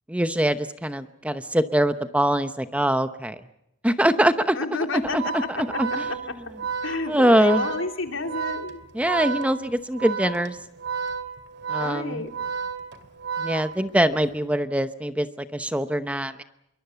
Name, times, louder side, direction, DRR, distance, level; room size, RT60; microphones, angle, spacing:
voice 1, 0.1-3.4 3.8-4.6 4.9-5.2 5.6-5.9 7.1-7.6 8.9-10.6 11.7-12.2 13.4-16.4, right 1 dB, 5° right, 10 dB, 0.8 m, -23 dB
voice 2, 4.5-5.8 6.1-6.2 6.8-8.8 11.8-12.3, left 3 dB, 70° left, 6 dB, 2.9 m, -30 dB
Organ, 5.1-14.2, right 6 dB, 55° right, 2.4 m, -32 dB
25.5 x 23.5 x 6.9 m, 0.83 s
head